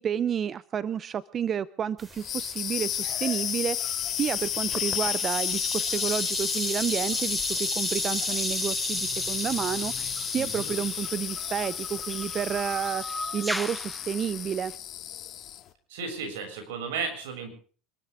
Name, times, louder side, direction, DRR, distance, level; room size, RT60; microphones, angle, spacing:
voice 1, 0.0-14.7, right 8 dB, 35° right, 18 dB, 0.6 m, -31 dB
sound 1, 2.0-13.0, right 2 dB, 20° right, 3.5 m, -36 dB
sound 2, 2.1-15.7, left 11 dB, 50° left, 2.3 m, -32 dB
sound 3, 9.2-14.8, left 1 dB, ahead, 1.1 m, -39 dB
voice 2, 10.3-10.8 15.9-17.6, right 5 dB, 85° right, 6 dB, 6.9 m, -34 dB
26.5 x 13.5 x 3.6 m, 0.41 s
supercardioid pair, 95°, 0 cm